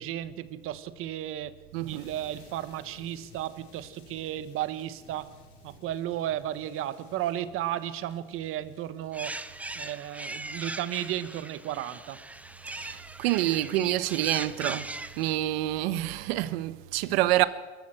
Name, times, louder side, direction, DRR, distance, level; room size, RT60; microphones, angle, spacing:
voice 1, 0.0-1.5 1.9-5.3 5.6-9.4 9.8-12.2, right 12 dB, 40° right, 1.4 m, -34 dB
voice 2, 1.7-2.1 12.7-17.5, right 15 dB, 70° right, 1.3 m, -27 dB
sound 1, 1.8-12.0 12.3-12.6, left 5 dB, 75° left, 7.2 m, -57 dB
sound 2, 9.1-15.4, right 2 dB, 5° right, 0.7 m, -39 dB
23.0 x 14.5 x 9.0 m
supercardioid pair, 135°, 32 cm